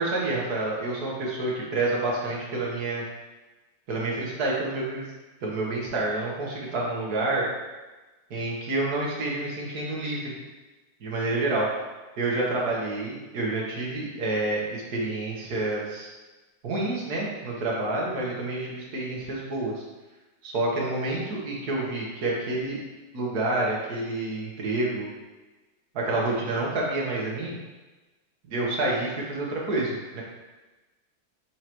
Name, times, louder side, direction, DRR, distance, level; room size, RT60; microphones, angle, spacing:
voice 1, 0.0-3.0 3.9-5.0 5.4-7.5 8.3-10.3 11.0-11.7 12.2-16.1 16.6-19.8 20.4-22.8 23.1-25.1 25.9-27.6 28.5-30.2, right 2 dB, 50° right, -4 dB, 1.7 m, -28 dB
7.1 x 4.7 x 3.0 m, 1.2 s
omnidirectional pair, 2.3 m